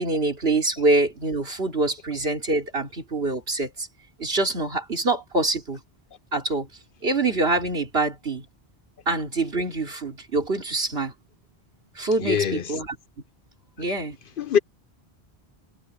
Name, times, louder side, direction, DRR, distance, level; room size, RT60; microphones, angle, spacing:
voice 1, 0.0-3.9 4.2-5.8 6.3-6.7 7.0-8.4 9.1-11.1 11.9-13.0 13.8-14.2, right 2 dB, 70° right, 3.3 m, -25 dB
voice 2, 12.2-12.6 14.4-14.6, left 8 dB, 60° left, 0.8 m, -22 dB
omnidirectional pair, 1.0 m